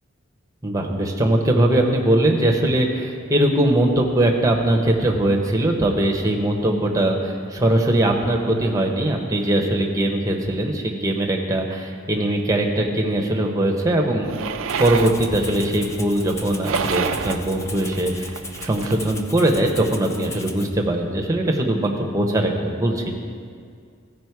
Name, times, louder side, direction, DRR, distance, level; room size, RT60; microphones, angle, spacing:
voice 1, 0.6-14.3 14.8-18.3 18.6-23.1, right 1 dB, 15° right, 1 dB, 0.8 m, -21 dB
sound 1, 14.2-19.1, right 6 dB, 70° right, 0.4 m, -30 dB
Rattle (instrument), 14.7-20.7, left 2 dB, 15° left, 0.4 m, -38 dB
14.5 x 5.1 x 4.7 m, 2.2 s
head